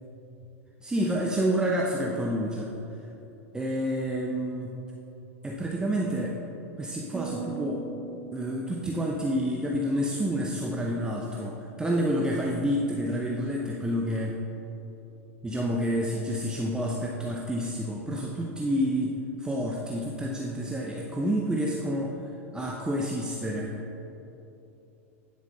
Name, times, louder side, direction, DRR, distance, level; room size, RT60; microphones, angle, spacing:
voice 1, 0.8-2.7 3.5-4.7 5.4-6.4 6.8-7.8 8.3-14.4 15.4-22.2 22.5-23.8, equal, 10° right, -2 dB, 0.8 m, -29 dB
sound 1, 7.1-10.5, right 6 dB, 35° right, 2.1 m, -41 dB
9.9 x 6.9 x 3.9 m, 2.9 s
hypercardioid pair, 95°, 7 cm